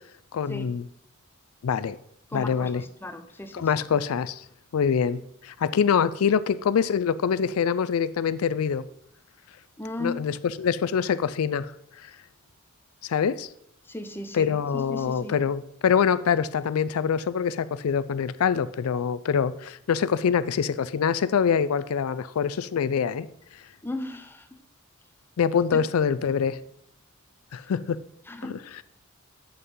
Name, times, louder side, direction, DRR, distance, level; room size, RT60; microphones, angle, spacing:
voice 1, 0.3-0.8 1.6-2.0 2.3-2.8 3.5-4.4 4.7-8.8 10.0-11.7 12.0-12.1 13.0-13.5 14.3-23.3 25.4-26.6 27.5-28.0, left 7 dB, 90° left, 0.4 m, -25 dB
voice 2, 2.3-3.7 9.8-10.3 13.8-15.4 23.8-24.5 25.7-25.8 28.3-28.6, left 2 dB, 10° left, 0.6 m, -36 dB
8.1 x 5.7 x 5.3 m
head